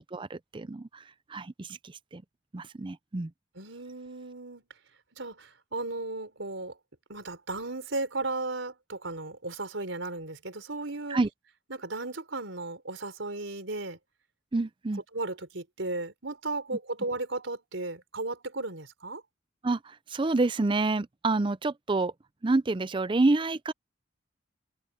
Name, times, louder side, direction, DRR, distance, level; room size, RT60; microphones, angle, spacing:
voice 1, 0.1-0.9 1.3-1.8 2.1-2.2 2.5-3.3 11.1-11.3 14.5-15.0 19.6-19.8 20.1-22.1 22.4-23.7, right 2 dB, 25° right, 0.5 m, -27 dB
voice 2, 3.5-4.6 5.1-6.8 7.1-11.2 11.7-14.0 15.1-19.2, right 2 dB, 85° right, 4.0 m, -35 dB
head